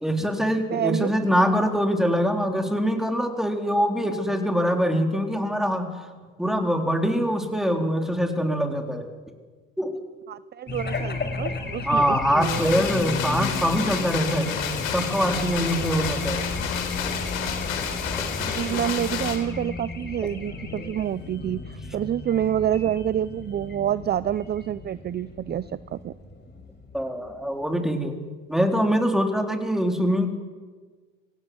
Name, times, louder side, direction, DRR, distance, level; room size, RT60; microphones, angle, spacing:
voice 1, 0.0-5.9 6.4-9.1 9.8-10.0 11.9-14.5 14.9-16.5 18.2-18.3 26.9-28.2 28.5-30.3, equal, ahead, 4 dB, 3.9 m, -24 dB
voice 2, 0.7-1.1 10.3-12.6 18.4-26.1, right 10 dB, 25° right, 18 dB, 0.6 m, -28 dB
Race car auto racing / Alarm, 10.7-27.6, left 3 dB, 25° left, 4.8 m, -34 dB
sound 1, 12.4-19.4, left 8 dB, 80° left, 4.2 m, -30 dB
27.0 x 16.0 x 7.9 m, 1.5 s
hypercardioid pair, 85°, 40 cm